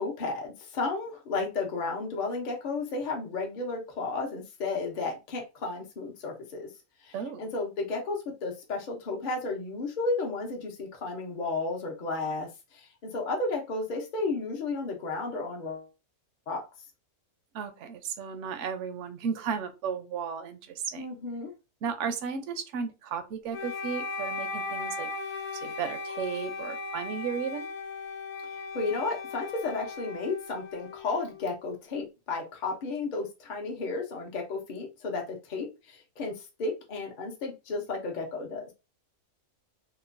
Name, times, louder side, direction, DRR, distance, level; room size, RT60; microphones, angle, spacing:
voice 1, 0.0-6.7 7.0-15.9 16.5-16.6 21.0-21.5 28.7-38.7, left 3 dB, 50° left, 1 dB, 0.5 m, -33 dB
voice 2, 7.1-7.5 17.5-21.1 21.8-25.1 25.6-27.7, right 6 dB, 65° right, 7 dB, 0.8 m, -34 dB
Wind instrument woodwind instrument, 23.5-31.6, left 3 dB, 75° left, 1.1 m, -37 dB
2.9 x 2.1 x 2.5 m, 0.27 s
omnidirectional pair, 1.6 m